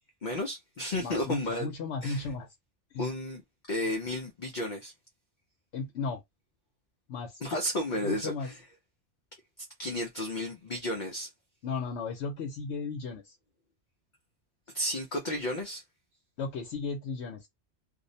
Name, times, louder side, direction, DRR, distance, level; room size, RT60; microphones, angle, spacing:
voice 1, 0.2-1.7 2.0-2.3 3.0-3.4 3.7-4.9 7.4-8.6 9.8-11.3 14.7-15.8, left 1 dB, 55° left, 0.6 m, -32 dB
voice 2, 1.0-2.5 2.9-3.1 5.7-6.2 7.1-7.4 8.0-8.5 11.6-13.4 16.4-17.5, left 4 dB, 75° left, 0.9 m, -35 dB
2.5 x 2.0 x 2.6 m
omnidirectional pair, 1.2 m